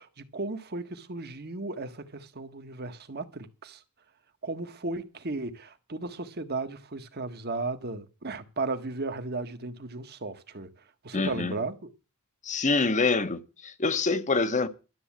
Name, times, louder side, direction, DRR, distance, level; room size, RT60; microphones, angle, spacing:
voice 1, 0.0-3.8 4.4-10.7 11.0-11.8, right 3 dB, 45° right, 1.5 m, -35 dB
voice 2, 11.1-11.5 12.4-14.7, left 3 dB, 35° left, 1.1 m, -26 dB
12.5 x 7.8 x 7.4 m
head